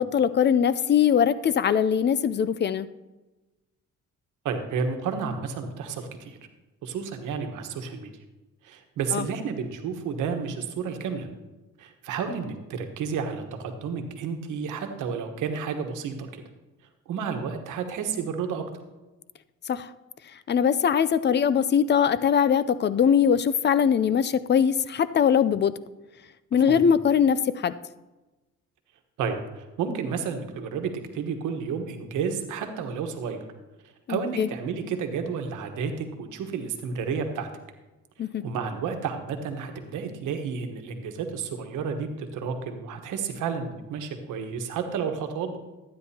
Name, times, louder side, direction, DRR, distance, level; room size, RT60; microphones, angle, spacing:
voice 1, 0.0-2.9 9.1-9.2 19.7-19.9 20.5-25.7 26.5-27.7 34.1-34.5 38.2-38.4, left 8 dB, 35° left, 15 dB, 0.4 m, -21 dB
voice 2, 4.4-6.4 6.8-8.1 8.6-11.3 11.8-16.4 17.1-18.6 26.7-26.9 29.2-33.4 33.8-37.5 38.4-45.6, right 6 dB, 85° right, 5 dB, 1.2 m, -31 dB
12.5 x 9.5 x 2.8 m, 1.1 s
cardioid pair, 90°, 30 cm